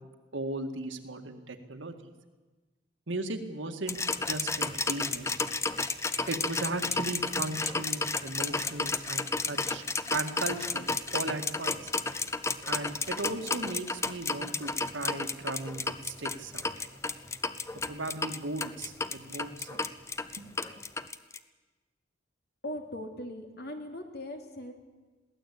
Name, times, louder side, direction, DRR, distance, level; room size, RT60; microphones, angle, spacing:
voice 1, 0.3-2.1 3.1-5.3 6.3-9.8 10.1-11.9 12.7-16.9 17.9-19.9, right 2 dB, 80° right, 6 dB, 1.9 m, -37 dB
sound 1, 3.9-21.4, left 3 dB, 15° left, 0.6 m, -32 dB
voice 2, 22.6-24.7, left 1 dB, 55° left, 4 dB, 2.8 m, -39 dB
22.0 x 16.5 x 8.4 m, 1.3 s
head